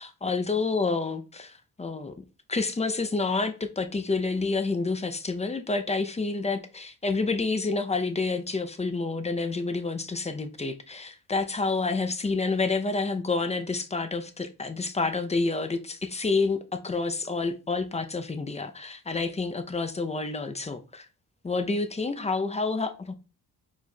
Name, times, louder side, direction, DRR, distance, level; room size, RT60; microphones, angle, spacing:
voice 1, 0.0-1.5 1.8-2.2 2.5-21.1 21.4-23.1, left 3 dB, 15° left, 0.5 m, -29 dB
4.5 x 4.5 x 2.2 m
cardioid pair, 65°, 39 cm